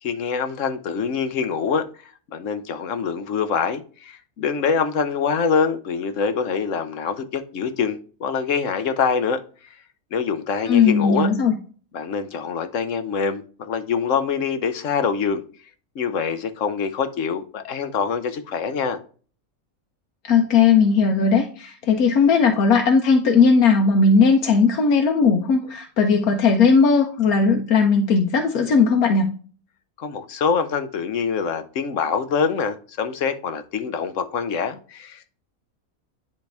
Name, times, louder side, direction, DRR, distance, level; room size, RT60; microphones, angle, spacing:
voice 1, 0.0-9.4 10.1-11.3 11.9-15.4 15.9-19.0 30.0-35.3, left 6 dB, 65° left, 1.1 m, -25 dB
voice 2, 10.7-11.5 20.3-29.3, left 5 dB, 85° left, 1.3 m, -17 dB
10.5 x 3.5 x 3.3 m
omnidirectional pair, 1.5 m